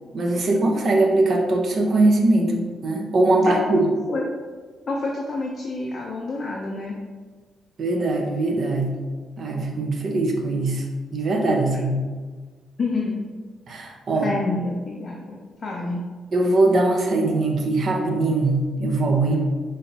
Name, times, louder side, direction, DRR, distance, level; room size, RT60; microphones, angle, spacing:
voice 1, 0.1-3.9 7.8-8.9 9.4-10.8 11.1-12.0 13.7-14.3 16.3-19.4, right 2 dB, 45° right, 1 dB, 0.7 m, -21 dB
voice 2, 3.4-3.8 4.1-4.3 4.9-7.0 12.8-13.2 14.2-16.0, left 3 dB, 35° left, -2 dB, 0.5 m, -28 dB
5.5 x 3.3 x 2.8 m, 1.4 s
cardioid pair, 150°, 0 cm